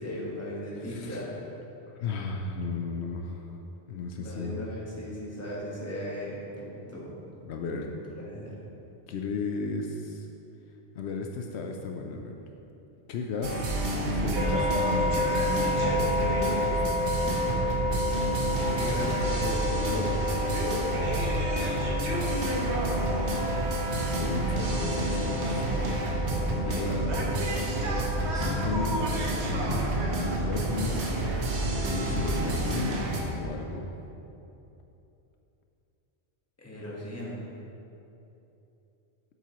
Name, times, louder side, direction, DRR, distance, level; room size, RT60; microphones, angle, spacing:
voice 1, 0.0-1.5 4.2-7.1 8.2-8.5 18.7-20.3 23.2-23.6 24.5-24.8 26.6-27.6 36.6-37.4, equal, 15° left, -6 dB, 1.4 m, -37 dB
voice 2, 0.8-1.2 2.0-3.6 3.9-4.6 7.4-7.9 9.1-10.3 11.0-12.3 13.1-13.7 14.1-17.0 22.1-22.3 23.9-25.6 26.6-27.0 28.2-29.0 29.6-29.9 30.2-31.0 31.9-33.0 33.4-33.9, left 4 dB, 80° left, 3 dB, 0.8 m, -35 dB
sound 1, 13.4-33.2, right 1 dB, 90° right, 1.2 m, -29 dB
sound 2, 14.3-29.3, left 2 dB, 50° right, 1.1 m, -32 dB
sound 3, 16.9-33.9, right 1 dB, 70° right, 1.3 m, -39 dB
8.0 x 7.4 x 3.0 m, 2.9 s
omnidirectional pair, 1.1 m